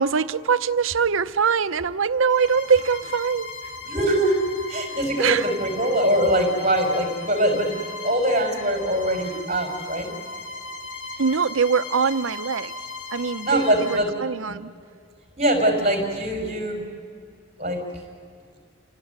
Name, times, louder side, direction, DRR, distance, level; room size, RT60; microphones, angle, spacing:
voice 1, 0.0-3.5 5.2-5.4 11.2-12.7 13.1-14.7, right 6 dB, 90° right, 0.7 m, -23 dB
Bowed string instrument, 2.3-14.1, left 3 dB, 80° left, 2.6 m, -37 dB
voice 2, 3.8-10.1 13.4-14.1 14.5-14.6 15.4-16.9 17.6-17.8, right 1 dB, 35° right, 5.7 m, -23 dB
28.5 x 17.5 x 9.6 m
head